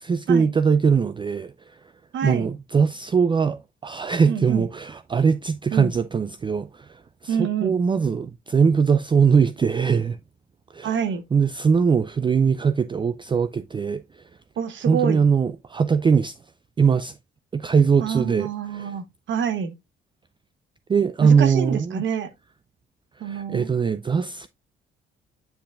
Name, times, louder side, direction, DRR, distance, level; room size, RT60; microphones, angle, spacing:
voice 1, 0.0-1.8 2.2-10.2 10.7-11.0 11.3-14.2 14.9-16.4 16.8-17.2 17.5-18.9 20.9-22.0 23.2-24.5, right 6 dB, 25° right, 0.4 m, -21 dB
voice 2, 2.1-2.5 4.3-4.6 5.7-5.9 7.3-7.8 10.8-11.2 14.6-15.2 18.0-19.7 21.2-22.3 23.2-23.7, right 8 dB, 70° right, 1.2 m, -27 dB
8.6 x 5.5 x 2.5 m
cardioid pair, 90°, 20 cm